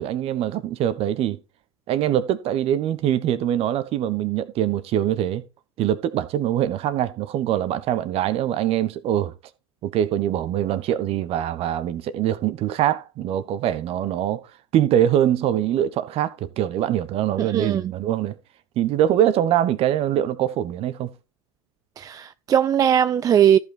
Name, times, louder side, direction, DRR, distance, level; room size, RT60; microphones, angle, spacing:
voice 1, 0.0-1.4 1.9-5.4 5.8-9.3 9.8-14.4 14.7-18.3 18.8-21.1, right 11 dB, 40° right, 1.2 m, -23 dB
voice 2, 17.4-17.8 22.0-23.6, right 9 dB, 25° right, 0.4 m, -19 dB
14.0 x 5.6 x 4.5 m
hypercardioid pair, 100°, 16 cm